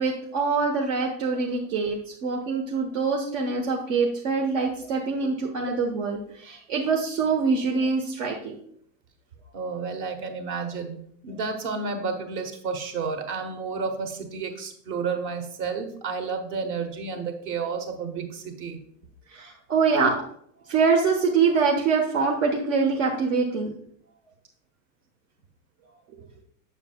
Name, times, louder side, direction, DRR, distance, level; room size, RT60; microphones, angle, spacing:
voice 1, 0.0-8.6 19.3-20.2 20.7-23.7, right 4 dB, 75° right, 0 dB, 1.2 m, -24 dB
voice 2, 9.5-11.0 11.2-18.8, right 5 dB, 50° right, 6 dB, 1.2 m, -31 dB
7.1 x 6.5 x 2.3 m, 0.65 s
supercardioid pair, 125°, 39 cm